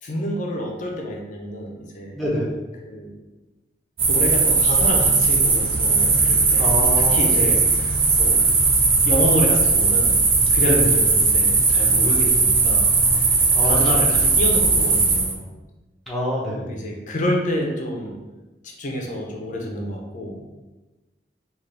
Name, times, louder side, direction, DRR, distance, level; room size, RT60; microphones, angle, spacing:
voice 1, 0.0-2.2 2.8-3.1 4.0-8.4 9.0-15.5 16.6-18.2 18.6-20.5, left 1 dB, 45° left, 0 dB, 0.6 m, -28 dB
voice 2, 2.1-2.5 6.6-7.5 10.6-10.9 13.5-14.0 16.1-16.7, left 1 dB, ahead, -6 dB, 0.9 m, -26 dB
sound 1, 4.0-15.3, right 4 dB, 30° right, 0.5 m, -18 dB
3.9 x 2.5 x 3.2 m, 1.1 s
head